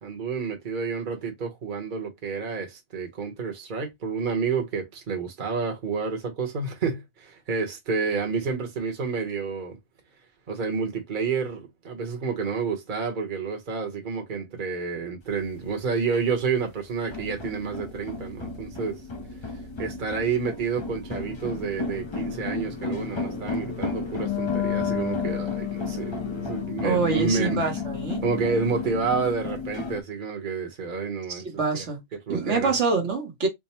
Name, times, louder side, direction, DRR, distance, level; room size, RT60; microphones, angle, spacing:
voice 1, 0.0-9.8 10.5-19.0 19.4-27.7 28.2-31.4 31.7-31.9 32.1-32.7, right 5 dB, 45° right, 1.1 m, -29 dB
sound 1, 15.2-30.0, left 3 dB, 30° left, 0.6 m, -34 dB
Wind instrument woodwind instrument, 24.1-29.2, left 14 dB, 85° left, 1.0 m, -32 dB
voice 2, 26.8-28.2 31.3-32.0 32.3-33.5, right 4 dB, 75° right, 1.5 m, -26 dB
3.5 x 2.1 x 4.2 m
omnidirectional pair, 1.2 m